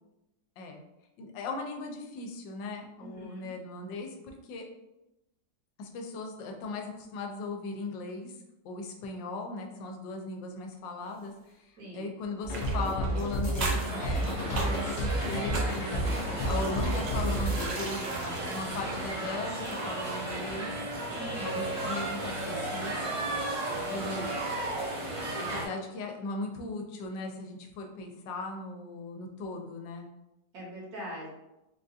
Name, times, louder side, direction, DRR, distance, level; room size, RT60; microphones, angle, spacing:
voice 1, 1.2-4.6 5.8-8.4 8.6-11.3 11.6-16.1 16.4-20.7 21.4-23.4 23.9-24.3 25.4-30.1, left 3 dB, 90° left, 3 dB, 1.3 m, -38 dB
voice 2, 3.0-3.5 11.8-12.1 21.1-21.6 30.5-31.3, equal, 60° right, -4 dB, 1.5 m, -42 dB
sound 1, 12.4-17.7, right 1 dB, 60° left, 0.8 m, -31 dB
sound 2, 12.5-20.1 20.3-20.5, right 2 dB, 90° right, 0.5 m, -40 dB
sound 3, 13.8-25.7, right 2 dB, 40° right, 0.5 m, -34 dB
3.8 x 2.3 x 2.6 m, 0.92 s
omnidirectional pair, 1.9 m